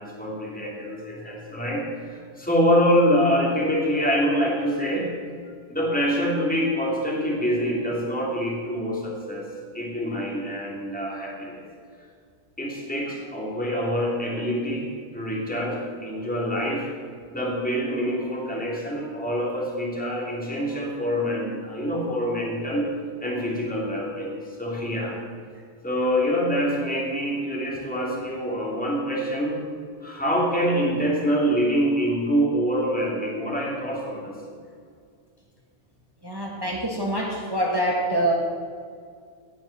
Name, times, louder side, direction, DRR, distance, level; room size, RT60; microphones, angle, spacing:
voice 1, 0.0-5.1 5.7-11.6 12.6-16.9 17.3-22.9 23.2-25.2 25.8-29.6 30.0-34.4, equal, 5° left, -3 dB, 2.7 m, -25 dB
voice 2, 36.2-38.3, right 1 dB, 20° right, -2 dB, 1.6 m, -25 dB
18.0 x 6.1 x 7.1 m, 2.1 s
omnidirectional pair, 1.1 m